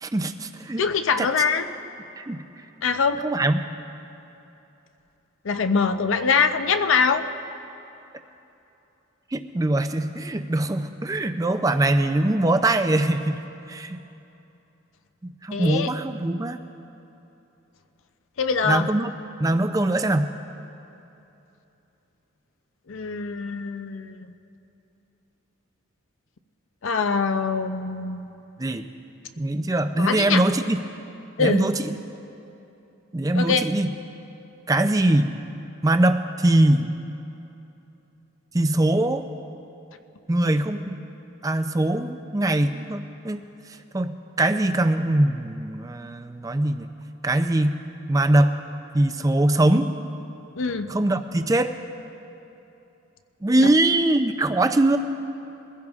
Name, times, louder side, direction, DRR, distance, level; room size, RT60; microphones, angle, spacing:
voice 1, 0.0-0.8 1.2-1.3 2.2-2.4 3.2-3.6 9.3-14.0 15.4-16.6 18.6-19.1 19.4-20.3 28.6-28.8 29.4-30.8 31.4-32.0 33.1-33.9 34.7-35.3 35.8-36.9 38.5-39.2 40.3-41.0 41.4-43.4 43.9-46.9 47.2-47.8 48.1-48.5 48.9-49.9 50.9-51.7 53.4-55.0, right 1 dB, 15° right, 8 dB, 0.4 m, -22 dB
voice 2, 0.8-1.7 2.8-3.2 5.4-7.2 15.5-15.9 18.4-18.9 22.9-24.3 26.8-28.4 30.0-30.4 31.4-31.6 33.3-33.6 50.6-50.9 53.6-53.7, left 5 dB, 65° left, 8 dB, 0.5 m, -23 dB
22.5 x 15.5 x 2.4 m, 2.9 s
head